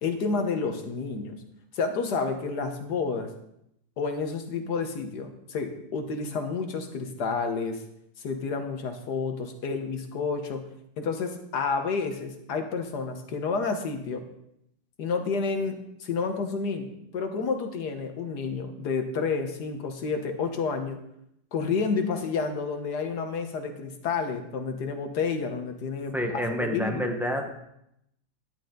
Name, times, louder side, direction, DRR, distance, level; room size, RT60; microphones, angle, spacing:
voice 1, 0.0-1.4 1.7-3.3 4.0-7.8 8.2-10.7 11.0-14.2 15.0-21.0 21.5-27.1, left 4 dB, 80° left, 6 dB, 1.8 m, -30 dB
voice 2, 26.1-27.6, equal, ahead, 2 dB, 1.0 m, -29 dB
11.5 x 10.5 x 3.9 m, 0.79 s
omnidirectional pair, 1.8 m